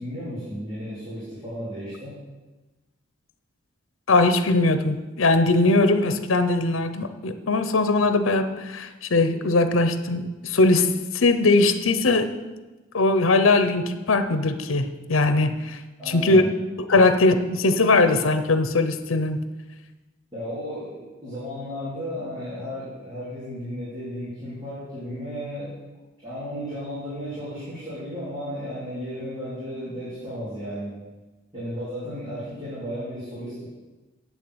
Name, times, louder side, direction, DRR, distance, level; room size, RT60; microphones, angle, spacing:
voice 1, 0.0-2.1 16.0-16.5 16.9-17.0 20.3-25.8 26.2-30.9 31.5-33.6, equal, 20° right, -11 dB, 3.8 m, -34 dB
voice 2, 4.1-12.3 12.9-15.8 16.1-16.4 16.9-19.5, left 2 dB, 85° left, 9 dB, 0.8 m, -20 dB
8.4 x 7.2 x 7.9 m, 1.2 s
head